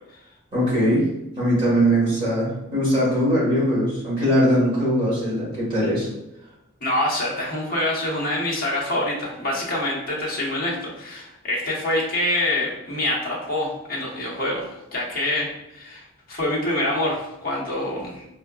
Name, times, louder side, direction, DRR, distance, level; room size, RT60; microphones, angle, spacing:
voice 1, 0.5-1.0 1.4-6.1, equal, 25° right, -9 dB, 1.3 m, -21 dB
voice 2, 6.8-18.3, left 1 dB, 45° left, -4 dB, 0.9 m, -26 dB
4.4 x 2.1 x 2.3 m, 0.88 s
head